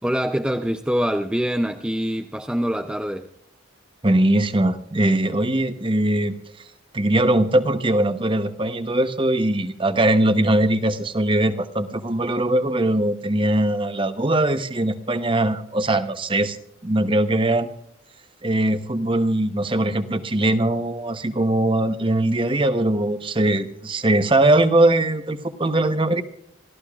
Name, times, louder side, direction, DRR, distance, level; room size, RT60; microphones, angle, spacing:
voice 1, 0.0-3.3, equal, 5° right, 0.5 m, -24 dB
voice 2, 4.0-6.3 6.9-16.6 16.8-17.7 18.4-26.2, right 1 dB, 25° right, 0.9 m, -21 dB
27.5 x 14.0 x 2.4 m
head